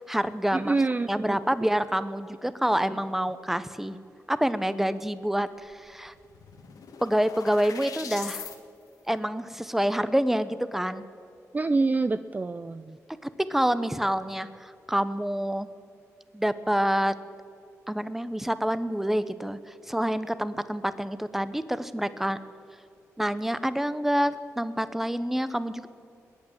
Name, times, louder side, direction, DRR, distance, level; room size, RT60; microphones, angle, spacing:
voice 1, 0.0-0.7 1.1-4.0 4.3-6.1 7.0-8.5 9.1-11.0 13.2-15.7 16.3-17.1 17.9-19.6 19.9-22.4 23.2-25.9, equal, 5° right, 14 dB, 0.9 m, -27 dB
voice 2, 0.5-1.4 11.5-13.0, right 3 dB, 25° right, 12 dB, 0.5 m, -26 dB
sound 1, 6.0-8.6, left 6 dB, 80° left, 1.7 m, -41 dB
21.0 x 8.8 x 7.4 m, 2.5 s
cardioid pair, 65°, 6 cm